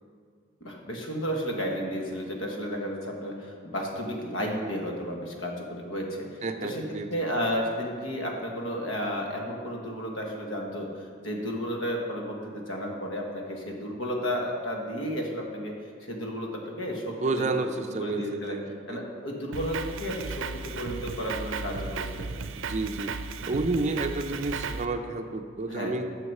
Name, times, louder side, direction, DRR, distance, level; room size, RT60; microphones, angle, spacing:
voice 1, 0.6-6.8 7.1-15.7 16.0-17.7 18.0-18.5 18.9-22.3 25.7-26.0, equal, 85° left, 0 dB, 1.4 m, -33 dB
voice 2, 6.4-7.1 17.2-19.0 22.6-23.1 23.4-26.1, right 3 dB, 35° right, 7 dB, 0.5 m, -30 dB
Drum kit, 19.5-24.9, right 4 dB, 85° right, 0.5 m, -35 dB
7.8 x 6.5 x 5.5 m, 2.1 s
head